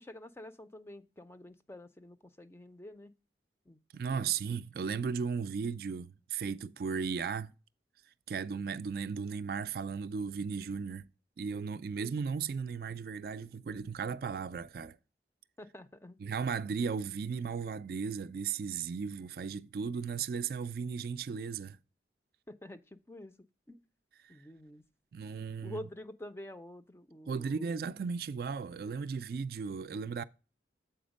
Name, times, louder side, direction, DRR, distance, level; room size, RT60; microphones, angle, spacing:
voice 1, 0.0-3.1 3.7-3.8 4.1-4.6 15.6-16.2 22.5-23.4 23.7-23.8 24.3-24.8 25.6-27.8, left 1 dB, 15° left, 0.4 m, -48 dB
voice 2, 3.9-7.5 8.3-11.1 11.4-15.0 16.2-21.8 25.1-25.8 27.3-30.2, right 5 dB, 55° right, 0.3 m, -36 dB
7.9 x 4.3 x 5.1 m
head